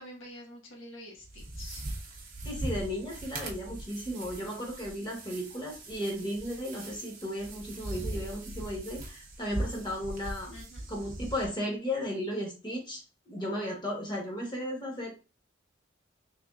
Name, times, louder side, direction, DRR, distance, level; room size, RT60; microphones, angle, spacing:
voice 1, 0.0-1.9 10.5-10.8, left 1 dB, 80° left, -1 dB, 1.3 m, -47 dB
sound 1, 1.2-11.5, right 1 dB, 45° right, 0.7 m, -40 dB
voice 2, 2.4-10.5 10.9-15.1, equal, 20° left, -2 dB, 1.1 m, -35 dB
3.4 x 3.4 x 2.3 m, 0.33 s
head